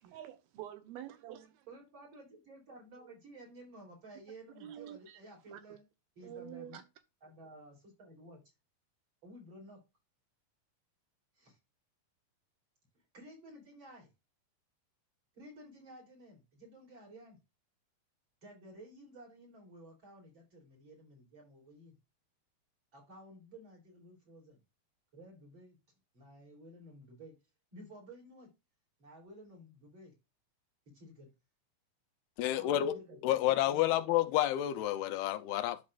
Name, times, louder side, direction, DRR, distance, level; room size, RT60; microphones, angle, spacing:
voice 1, 0.0-1.7 4.6-5.2 5.5-5.8 6.2-6.8, right 11 dB, 80° right, 2.7 m, -47 dB
voice 2, 1.7-5.8 6.2-6.8 7.2-8.4 9.2-9.8 11.3-11.6 13.1-14.1 15.3-17.4 18.4-22.0 22.9-24.6 25.1-25.8 26.1-27.4 27.7-28.5 29.0-30.1 30.9-31.3 32.4-34.0, right 1 dB, 35° right, 3.8 m, -54 dB
voice 3, 32.4-33.0 33.2-35.8, left 13 dB, 85° left, 2.7 m, -30 dB
11.5 x 4.8 x 2.4 m
omnidirectional pair, 4.4 m